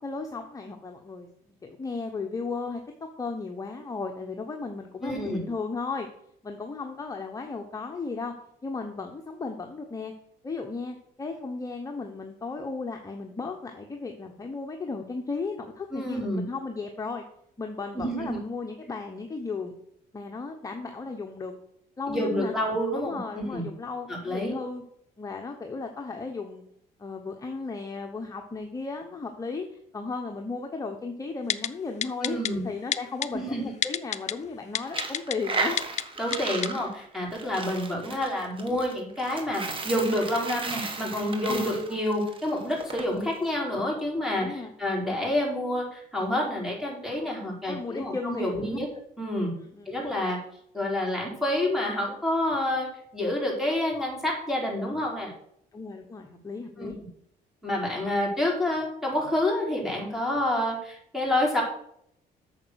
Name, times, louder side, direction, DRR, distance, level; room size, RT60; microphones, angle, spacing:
voice 1, 0.0-6.1 6.4-8.3 8.6-10.1 10.4-17.2 17.6-19.7 20.1-21.5 22.0-22.5 22.9-24.8 25.2-26.6 27.0-35.8 41.5-41.8 44.4-44.7 47.7-48.8 49.7-49.9 55.7-57.0, left 4 dB, 20° left, 3 dB, 1.1 m, -35 dB
voice 2, 5.0-5.4 15.9-16.4 17.9-18.4 22.1-23.6 24.1-24.5 32.2-32.6 33.3-33.7 36.2-48.9 49.2-49.5 49.9-50.4 50.7-52.9 53.1-55.3 56.8-56.9 57.6-61.6, left 1 dB, ahead, -2 dB, 4.3 m, -28 dB
Typing, 31.5-31.7 32.0-32.5 32.9-33.3 33.8-34.3 34.7-35.3 35.8-36.0 36.3-36.4 36.6-36.7, left 9 dB, 40° left, 0.5 m, -27 dB
Coin (dropping), 34.8-43.0, right 3 dB, 30° right, 1.7 m, -35 dB
8.5 x 6.7 x 6.4 m, 0.71 s
cardioid pair, 110°, 17 cm